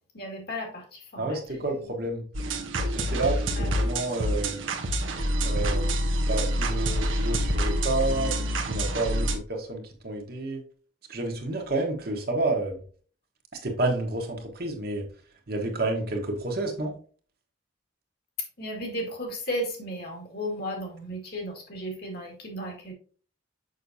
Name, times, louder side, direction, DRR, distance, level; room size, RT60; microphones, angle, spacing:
voice 1, 0.1-1.9 3.6-3.7 18.6-22.9, equal, 55° left, 1 dB, 2.0 m, -35 dB
voice 2, 1.2-2.2 2.7-4.6 5.4-10.6 11.1-12.8 13.6-15.1 15.5-16.9, right 2 dB, 50° right, 2 dB, 1.3 m, -30 dB
sound 1, 2.3-9.4, equal, 85° right, 1.0 m, -27 dB
6.5 x 5.9 x 2.7 m, 0.42 s
head